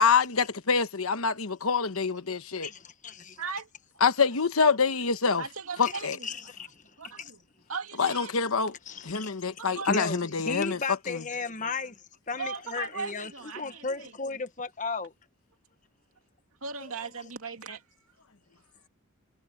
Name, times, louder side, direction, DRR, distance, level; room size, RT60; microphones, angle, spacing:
voice 1, 0.0-2.7 4.0-5.4 5.8-6.2 8.0-8.8 9.0-11.2, left 5 dB, 75° left, 1.2 m, -26 dB
voice 2, 2.6-3.4 6.2-6.7 7.2-7.3 8.9-9.3 9.8-11.9 12.3-15.1, left 4 dB, 35° left, 1.3 m, -34 dB
voice 3, 3.4-3.7 5.4-6.3 7.0-8.3 9.0-9.3 9.6-10.1 12.4-14.2 16.6-17.8, right 5 dB, 75° right, 2.6 m, -38 dB
head